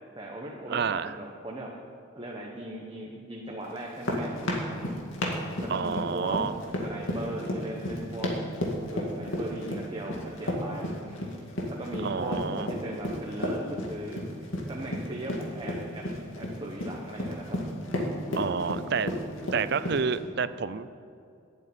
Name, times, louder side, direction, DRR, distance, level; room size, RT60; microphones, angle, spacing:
voice 1, 0.1-1.7 2.1-4.9 5.6-6.4 6.8-8.3 8.9-11.2 11.8-14.2 14.7-16.0 16.3-17.8, right 1 dB, 25° right, -2 dB, 1.2 m, -38 dB
voice 2, 0.7-1.2 5.7-6.6 12.0-12.7 18.4-19.1 19.5-20.9, right 5 dB, 55° right, 14 dB, 0.5 m, -29 dB
sound 1, 3.8-20.2, left 1 dB, 80° left, 2.2 m, -32 dB
12.5 x 7.9 x 9.3 m, 2.5 s
head